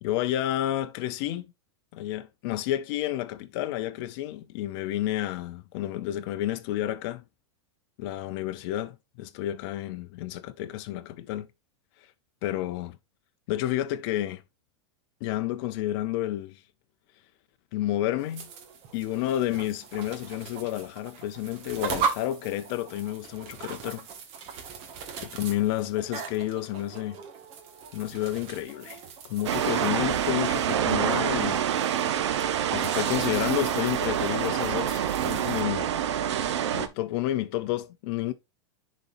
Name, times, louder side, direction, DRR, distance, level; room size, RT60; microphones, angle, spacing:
voice 1, 0.0-1.5 1.9-7.2 8.0-11.5 12.4-13.0 13.5-14.4 15.2-16.6 17.7-18.5 18.9-24.1 25.2-27.2 27.9-31.6 32.7-35.9 36.7-38.3, left 13 dB, 55° left, 0.6 m, -30 dB
sound 1, 18.2-35.6, right 6 dB, 45° right, 1.6 m, -39 dB
sound 2, 29.4-36.9, right 9 dB, 80° right, 0.9 m, -27 dB
10.5 x 4.1 x 2.6 m
supercardioid pair, 130°, 15 cm